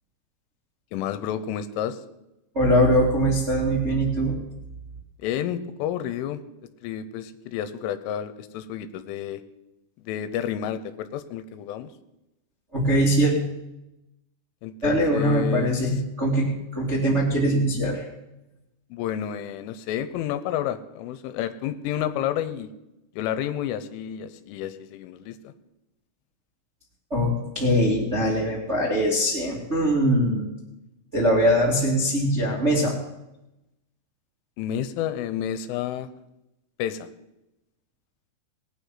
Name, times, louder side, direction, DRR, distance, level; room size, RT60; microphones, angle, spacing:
voice 1, 0.9-2.0 5.2-6.4 6.8-9.4 10.1-11.9 14.6-15.9 18.9-22.7 23.1-25.5 34.6-36.1 36.8-37.1, left 10 dB, 85° left, 12 dB, 3.3 m, -30 dB
voice 2, 2.5-4.3 12.7-13.3 14.8-18.0 27.1-30.5 31.1-33.0, equal, 25° right, -3 dB, 1.4 m, -22 dB
19.5 x 9.0 x 5.7 m, 0.93 s
omnidirectional pair, 5.7 m